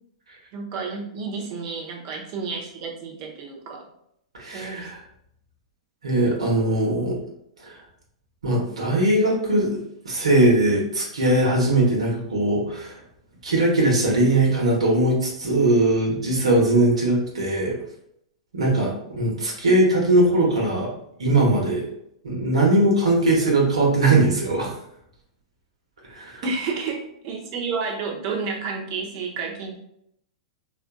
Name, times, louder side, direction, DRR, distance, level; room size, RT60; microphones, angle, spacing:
voice 1, 0.5-3.9 4.5-4.9 26.4-29.8, right 4 dB, 50° right, 0 dB, 0.9 m, -30 dB
voice 2, 4.3-5.0 6.0-7.2 7.6-7.8 8.4-9.8 10.0-12.9 13.4-17.8 18.5-20.9 21.2-21.8 22.2-24.7 26.1-26.4, right 2 dB, 85° right, -3 dB, 1.2 m, -20 dB
4.2 x 2.5 x 2.3 m, 0.75 s
hypercardioid pair, 115°, 3 cm